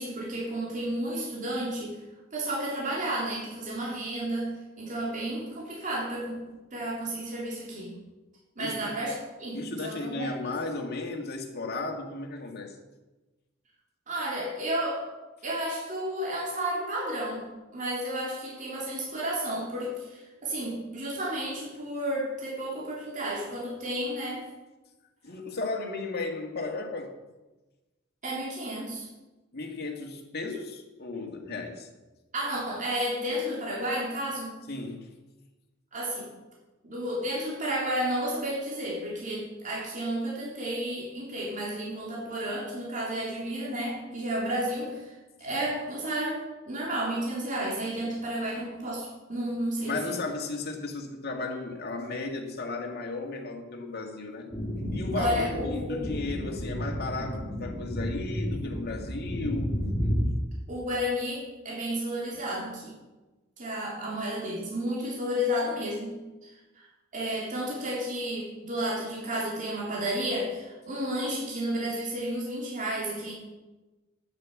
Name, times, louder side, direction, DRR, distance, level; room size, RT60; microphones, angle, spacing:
voice 1, 0.0-2.0 2.3-6.4 6.7-7.9 8.5-10.3 14.1-15.1 15.4-24.4 28.2-29.1 32.3-34.6 35.9-36.3 36.8-45.1 45.4-50.1 55.1-56.2 60.7-62.9 63.6-66.2 67.1-73.3, equal, 40° right, 3.4 m, -32 dB
voice 2, 8.6-9.0 9.5-12.8 25.2-27.2 29.5-31.9 34.7-35.1 49.8-54.5 54.9-59.8, left 3 dB, 50° left, 2.0 m, -35 dB
sound 1, 54.5-60.3, equal, 20° left, 1.8 m, -32 dB
10.0 x 9.6 x 7.4 m
head